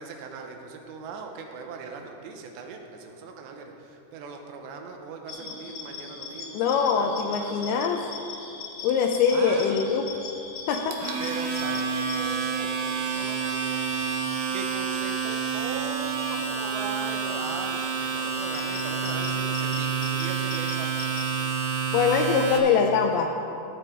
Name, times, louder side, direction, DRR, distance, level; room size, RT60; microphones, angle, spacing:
voice 1, 0.0-8.2 9.3-10.2 11.2-13.9 14.5-20.9, right 5 dB, 85° right, 3 dB, 3.1 m, -39 dB
sound 1, 5.3-21.4, left 4 dB, 60° left, 2.7 m, -41 dB
voice 2, 6.5-8.0 8.8-10.0 10.7-11.0 21.9-23.4, left 6 dB, 80° left, 4 dB, 2.3 m, -23 dB
Domestic sounds home sounds, 10.7-22.6, right 6 dB, 70° right, 2.4 m, -29 dB
14.5 x 8.0 x 4.5 m, 2.8 s
omnidirectional pair, 5.0 m